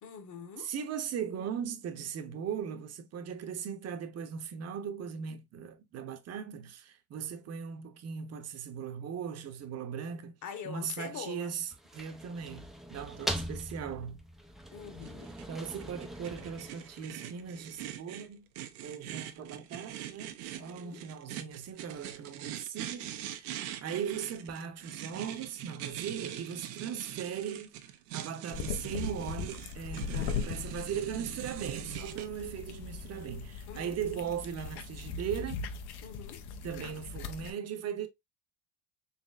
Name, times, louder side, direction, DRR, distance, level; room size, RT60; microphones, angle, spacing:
voice 1, 0.0-0.7 10.4-11.5 14.7-15.3 20.6-21.0 33.7-34.0 36.0-36.4, left 7 dB, 40° left, 1.2 m, -44 dB
voice 2, 0.6-10.3 10.6-14.2 15.5-18.5 18.8-35.6 35.9-36.0 36.6-38.1, right 8 dB, 35° right, 0.8 m, -39 dB
sound 1, 11.6-17.6, equal, ahead, 0.4 m, -41 dB
sound 2, 15.0-32.3, right 12 dB, 80° right, 0.7 m, -43 dB
sound 3, 28.5-37.5, left 6 dB, 60° left, 0.7 m, -39 dB
4.1 x 3.0 x 2.4 m
supercardioid pair, 95°, 44 cm